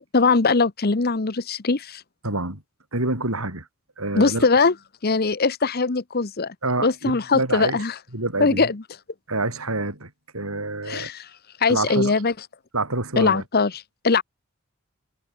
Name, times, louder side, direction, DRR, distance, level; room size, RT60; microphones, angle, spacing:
voice 1, 0.1-2.0 4.1-4.7 5.0-6.5 6.8-7.9 8.4-8.8 10.9-11.3 11.6-12.3 13.2-14.2, left 4 dB, 45° left, 0.9 m, -21 dB
voice 2, 2.2-2.6 2.9-3.7 4.0-4.5 6.6-7.8 8.1-8.7 9.3-11.1 11.7-12.1 12.7-13.4, right 2 dB, 85° right, 7.8 m, -27 dB
head